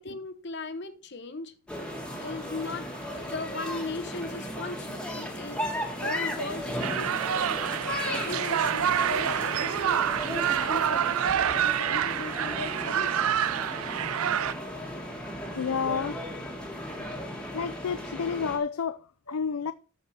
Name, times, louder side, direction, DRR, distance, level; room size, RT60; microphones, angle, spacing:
voice 1, 0.0-1.5 2.2-2.9 3.1-5.7 6.0-7.5 8.0-13.5 16.4-16.5 19.3-19.4, left 3 dB, 50° left, 1.1 m, -38 dB
sound 1, 1.7-18.6, equal, 5° left, 1.8 m, -35 dB
sound 2, 6.8-14.5, right 9 dB, 80° right, 0.4 m, -27 dB
voice 2, 15.6-16.2 17.0-19.7, left 6 dB, 90° left, 0.5 m, -31 dB
13.0 x 4.9 x 4.7 m
head